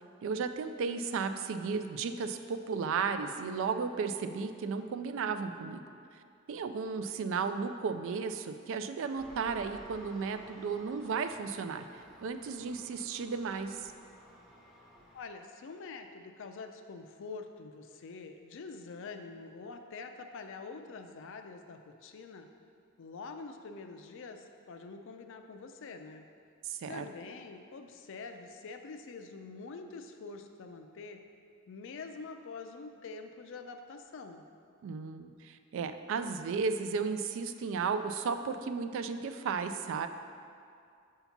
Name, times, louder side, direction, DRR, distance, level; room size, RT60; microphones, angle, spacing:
voice 1, 0.2-5.8 6.5-13.9 26.6-27.1 34.8-40.1, right 5 dB, 65° right, 8 dB, 0.3 m, -34 dB
Engine, 9.2-15.2, equal, ahead, 0.7 m, -55 dB
voice 2, 15.1-22.5 23.0-26.3 26.9-31.2 31.7-34.4, left 4 dB, 60° left, 6 dB, 0.4 m, -45 dB
6.8 x 2.8 x 5.7 m, 2.4 s
head